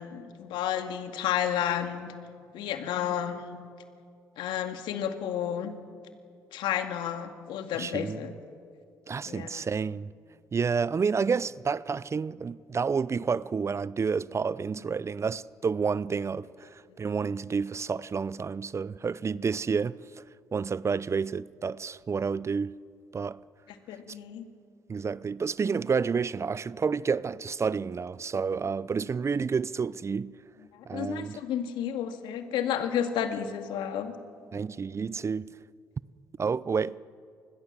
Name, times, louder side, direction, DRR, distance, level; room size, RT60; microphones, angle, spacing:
voice 1, 0.0-2.1 2.5-3.6 4.4-5.7 6.5-8.3 9.3-9.6 23.9-24.5 30.7-34.2, left 9 dB, 75° left, 2.1 m, -31 dB
voice 2, 7.7-8.4 9.1-10.1 10.5-20.2 20.5-22.8 23.1-23.4 24.1-24.2 24.9-30.4 30.9-31.4 34.5-35.6 36.4-37.0, right 5 dB, 35° right, 0.6 m, -30 dB
25.5 x 21.0 x 7.5 m
supercardioid pair, 60°, 8 cm